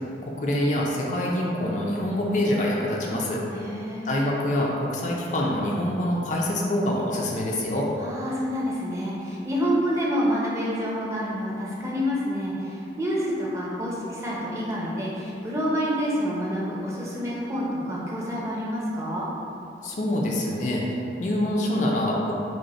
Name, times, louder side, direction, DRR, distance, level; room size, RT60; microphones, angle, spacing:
voice 1, 0.2-3.4 4.1-7.9 19.8-22.3, left 1 dB, 45° left, -2 dB, 0.4 m, -25 dB
voice 2, 3.5-4.1 8.0-19.3, equal, 15° right, -6 dB, 0.6 m, -28 dB
5.1 x 2.1 x 4.2 m, 2.7 s
head